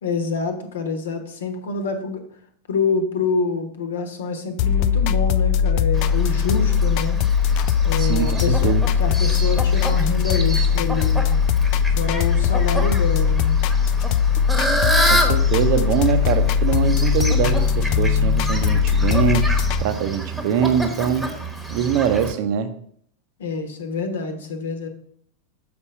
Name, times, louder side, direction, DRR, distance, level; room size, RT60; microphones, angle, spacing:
voice 1, 0.0-2.2 2.7-7.2 7.8-8.7 9.0-11.3 11.9-13.6 23.4-24.9, left 4 dB, 65° left, 7 dB, 1.1 m, -26 dB
sound 1, 4.6-19.8, left 7 dB, 45° left, 0.3 m, -20 dB
Fowl, 5.9-22.3, right 1 dB, 5° right, 1.2 m, -28 dB
voice 2, 8.0-8.8 15.1-19.5 19.8-21.3 21.7-22.7, right 8 dB, 45° right, 10 dB, 0.7 m, -23 dB
6.9 x 4.4 x 5.5 m, 0.64 s
figure-of-eight pair, 90°, 0 cm